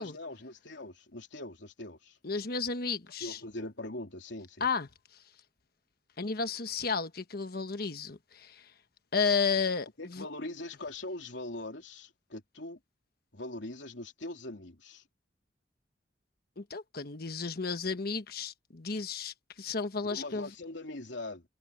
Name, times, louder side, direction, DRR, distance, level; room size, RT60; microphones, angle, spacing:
voice 1, 0.0-2.2 3.2-4.7 10.0-12.8 13.3-15.0 20.1-21.4, left 2 dB, 80° left, 3.1 m, -42 dB
voice 2, 2.2-3.4 4.6-5.2 6.2-8.7 9.1-10.3 16.6-20.5, left 5 dB, 55° left, 1.2 m, -33 dB
head